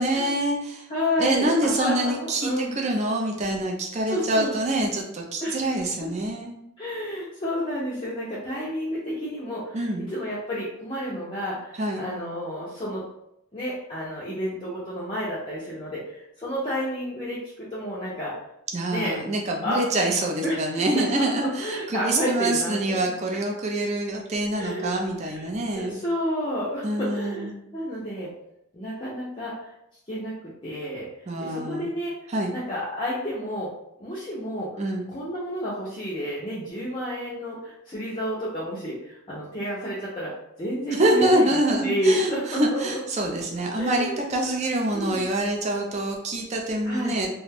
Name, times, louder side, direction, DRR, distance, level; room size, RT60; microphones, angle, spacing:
voice 1, 0.0-0.9 1.2-6.5 9.7-10.1 11.8-12.0 18.7-25.9 26.8-27.5 31.3-31.9 32.3-32.5 34.8-35.0 40.9-47.3, right 1 dB, 30° right, 1 dB, 0.4 m, -25 dB
voice 2, 0.9-2.7 4.1-4.5 5.4-5.6 6.0-6.1 6.8-13.1 13.5-18.3 18.9-19.2 19.6-19.8 20.4-21.0 21.4-23.1 24.5-24.9 25.2-25.4 25.7-28.3 28.7-29.7 30.1-30.3 30.6-31.1 31.4-32.1 32.5-33.7 34.0-34.7 35.1-40.3 40.6-41.5 41.8-43.0 43.8-44.2 44.9-45.2 46.8-47.2, equal, 25° left, -8 dB, 0.5 m, -30 dB
2.4 x 2.2 x 3.3 m, 0.79 s
head